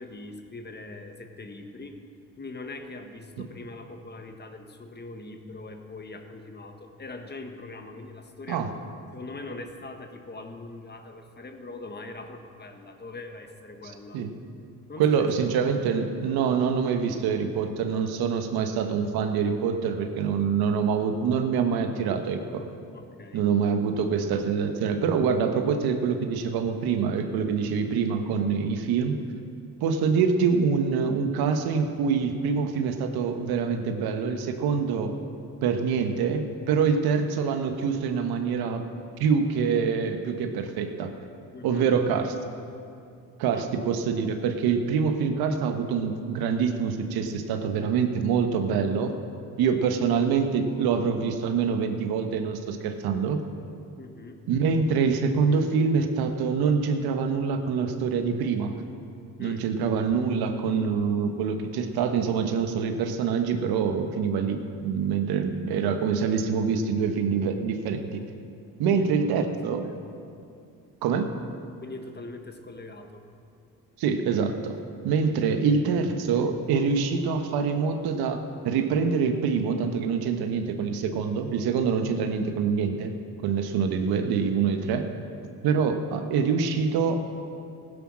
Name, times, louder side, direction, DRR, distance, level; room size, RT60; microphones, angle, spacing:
voice 1, 0.0-2.0 2.4-8.7 9.1-14.2 14.9-15.3 15.6-15.8 22.9-23.5 41.5-41.9 43.5-43.7 54.0-54.4 59.4-59.6 65.0-65.4 68.8-69.5 69.8-70.0 71.8-73.2 81.8-82.1, left 2 dB, 25° left, 5 dB, 1.5 m, -42 dB
voice 2, 15.0-22.7 23.3-29.2 29.8-35.1 35.6-38.9 39.2-41.1 41.6-42.3 43.4-49.1 49.6-53.4 54.5-58.7 59.4-68.2 68.8-69.9 71.0-71.3 74.0-83.1 83.4-85.1 85.6-87.3, right 6 dB, 80° right, 6 dB, 1.3 m, -25 dB
16.0 x 10.0 x 6.2 m, 2.5 s
supercardioid pair, 80°, 37 cm